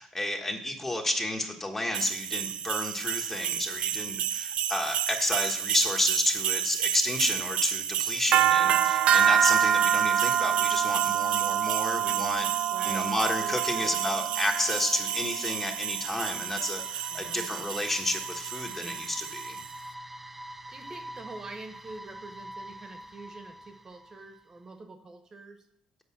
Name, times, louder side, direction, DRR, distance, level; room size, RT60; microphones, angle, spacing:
voice 1, 0.0-12.5 12.8-19.6, left 1 dB, 15° left, 2 dB, 1.3 m, -31 dB
sound 1, 1.9-19.7, right 9 dB, 60° right, 0.5 m, -28 dB
voice 2, 12.7-14.0 17.1-17.5 20.5-25.7, right 3 dB, 30° right, 6 dB, 1.1 m, -45 dB
sound 2, 14.6-24.5, right 1 dB, 5° right, 0.4 m, -45 dB
7.9 x 5.4 x 7.2 m, 0.69 s
cardioid pair, 115°, 2 cm